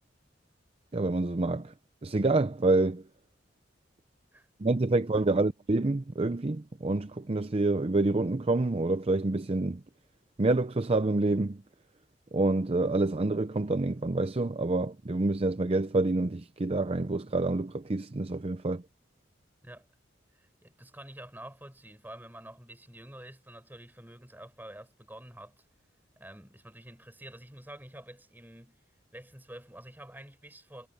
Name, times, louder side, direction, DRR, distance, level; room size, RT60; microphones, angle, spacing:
voice 1, 0.9-1.7 2.0-3.0 4.6-9.8 10.4-11.6 12.3-18.8, right 2 dB, 30° right, 0.6 m, -27 dB
voice 2, 20.3-25.6 26.2-28.8 29.1-30.9, right 1 dB, 10° right, 4.8 m, -48 dB
head